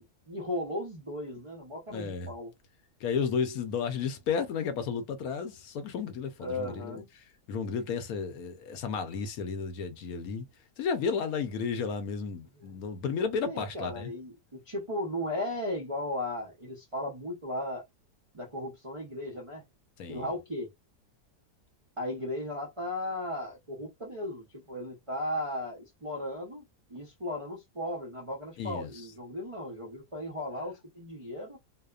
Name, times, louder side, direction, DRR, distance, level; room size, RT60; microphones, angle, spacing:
voice 1, 0.0-2.5 6.4-7.1 12.6-12.7 13.4-17.8 18.3-19.6 20.1-20.7 22.0-26.6 26.9-31.6, left 1 dB, 45° right, 0.4 m, -36 dB
voice 2, 1.9-2.3 3.0-10.5 10.8-14.1 20.0-20.3 28.6-29.1, left 6 dB, 70° left, 1.0 m, -33 dB
2.7 x 2.1 x 2.3 m
omnidirectional pair, 1.7 m